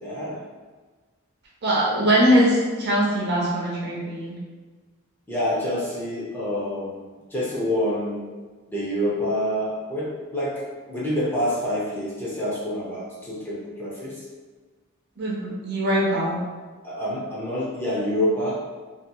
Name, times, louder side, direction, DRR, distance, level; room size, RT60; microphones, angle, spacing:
voice 1, 0.0-0.4 5.3-8.2 8.7-14.2 16.8-18.5, equal, 10° left, -7 dB, 0.5 m, -27 dB
voice 2, 1.6-4.4 15.2-16.4, equal, 45° right, -4 dB, 0.6 m, -21 dB
2.7 x 2.7 x 2.2 m, 1.3 s
head